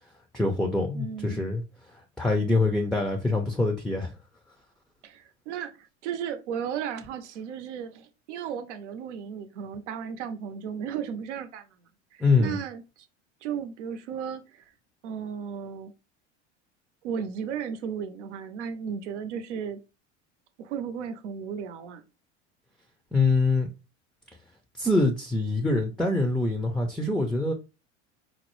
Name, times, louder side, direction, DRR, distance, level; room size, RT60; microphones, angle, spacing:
voice 1, 0.3-1.6 2.2-4.1 12.2-12.6 23.1-23.7 24.8-27.5, left 2 dB, ahead, 0.4 m, -24 dB
voice 2, 0.9-1.4 5.0-11.7 12.1-13.1 13.4-14.7 15.0-15.9 17.0-19.8 20.6-22.0, right 7 dB, 80° right, 0.7 m, -35 dB
4.2 x 2.0 x 3.0 m
hypercardioid pair, 95°, 35 cm